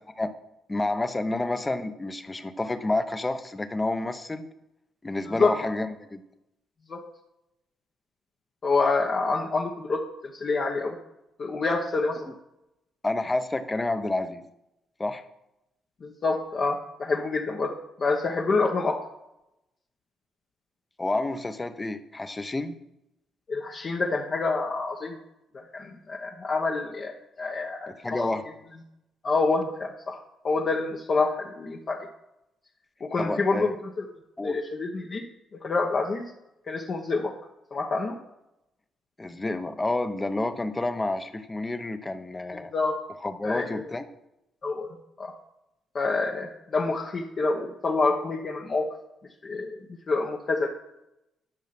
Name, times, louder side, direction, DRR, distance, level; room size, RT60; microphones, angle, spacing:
voice 1, 0.7-4.5 5.0-6.2 13.0-14.4 15.0-15.2 21.0-22.8 27.9-28.4 33.2-33.7 34.4-34.6 39.2-42.7 43.2-44.1, left 2 dB, 20° left, 10 dB, 0.9 m, -29 dB
voice 2, 8.6-10.0 10.3-11.0 11.4-12.3 16.0-17.7 18.0-19.0 23.5-25.2 25.5-28.3 29.2-30.2 30.4-32.1 33.0-34.0 34.4-35.2 35.6-36.2 36.7-37.3 37.7-38.2 42.7-43.0 43.4-43.8 44.6-44.9 45.2-45.3 45.9-48.9 49.4-49.7 50.1-50.7, left 3 dB, 45° left, -1 dB, 1.1 m, -27 dB
10.5 x 5.7 x 5.9 m, 0.86 s
cardioid pair, 90°, 0 cm